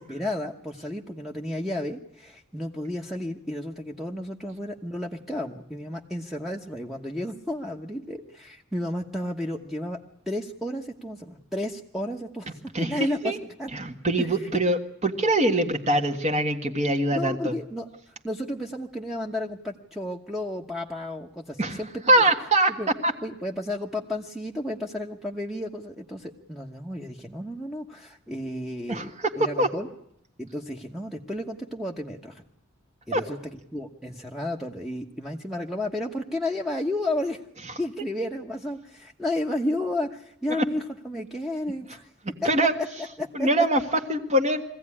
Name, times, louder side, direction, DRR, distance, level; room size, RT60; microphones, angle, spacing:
voice 1, 0.1-10.0 10.3-13.3 13.6-13.7 14.2-14.5 17.1-22.2 22.8-22.9 23.2-29.9 30.4-32.4 33.1-37.4 37.8-42.1 42.4-42.5 43.2-43.7, left 1 dB, ahead, 1 dB, 1.1 m, -32 dB
voice 2, 12.7-13.4 13.7-17.5 21.6-21.8 22.1-22.7 23.0-23.1 28.9-29.7 33.1-33.2 42.4-42.7 43.3-43.8 44.1-44.6, right 1 dB, 35° right, 4 dB, 1.6 m, -23 dB
23.0 x 16.0 x 9.8 m, 0.75 s
head